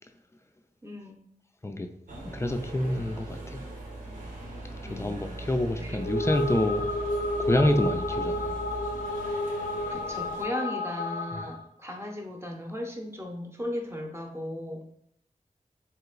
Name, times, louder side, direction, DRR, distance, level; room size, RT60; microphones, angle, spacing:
voice 1, 0.8-1.2 4.8-5.2 5.8-6.0 9.9-14.9, left 1 dB, 15° right, 0.8 m, -36 dB
sound 1, 2.1-10.4, right 2 dB, 70° right, 0.9 m, -40 dB
voice 2, 2.3-3.6 4.8-6.9 7.4-8.6 11.3-11.5, left 1 dB, 20° left, 0.4 m, -27 dB
sound 2, 5.9-11.7, left 1 dB, 80° left, 0.5 m, -31 dB
3.6 x 2.9 x 2.4 m
cardioid pair, 50°, 15 cm